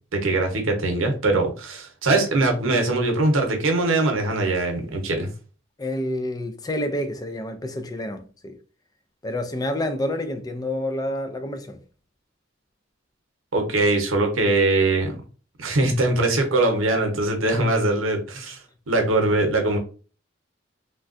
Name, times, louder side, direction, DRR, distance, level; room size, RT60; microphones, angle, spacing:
voice 1, 0.1-5.3 13.5-15.2 15.6-18.6 18.9-19.8, right 2 dB, 80° right, 0.8 m, -22 dB
voice 2, 5.8-8.6 9.2-11.8, left 1 dB, 20° left, 0.3 m, -28 dB
3.3 x 2.2 x 2.5 m
head